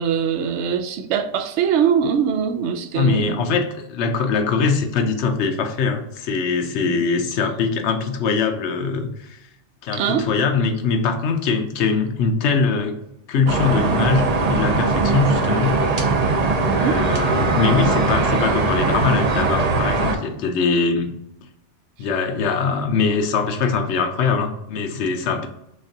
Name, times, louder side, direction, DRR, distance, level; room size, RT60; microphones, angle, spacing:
voice 1, 0.0-3.4 6.8-7.0 9.9-10.3 16.6-17.0, right 7 dB, 75° right, 0.8 m, -22 dB
voice 2, 2.9-9.4 9.8-13.0 13.3-15.7 16.6-21.1 22.0-25.5, left 5 dB, 70° left, 0.9 m, -22 dB
sound 1, 13.5-20.1, right 3 dB, 45° right, 0.6 m, -20 dB
6.4 x 2.4 x 2.7 m
omnidirectional pair, 1.2 m